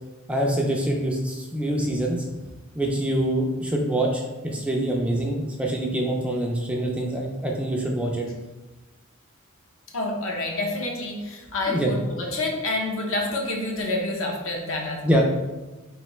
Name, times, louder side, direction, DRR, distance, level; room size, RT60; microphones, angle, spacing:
voice 1, 0.3-2.2 2.7-8.3 11.7-11.9 15.0-15.2, right 1 dB, 5° right, -1 dB, 0.3 m, -25 dB
voice 2, 9.9-15.1, left 2 dB, 65° left, 0 dB, 0.8 m, -28 dB
3.5 x 3.2 x 3.1 m, 1.2 s
head